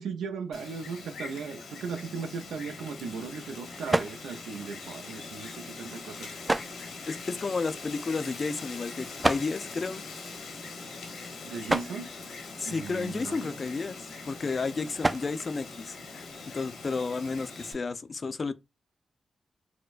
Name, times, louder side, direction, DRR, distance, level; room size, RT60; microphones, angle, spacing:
voice 1, 0.0-6.3 11.4-12.1 12.7-13.5, right 5 dB, 90° right, 0.5 m, -37 dB
Wind, 0.5-17.7, left 4 dB, 85° left, 0.9 m, -42 dB
sound 1, 2.3-16.6, right 2 dB, 25° right, 0.3 m, -36 dB
voice 2, 7.1-10.0 12.6-16.3 16.5-18.5, left 4 dB, 50° left, 0.4 m, -32 dB
4.4 x 2.1 x 2.4 m
supercardioid pair, 50°, 0 cm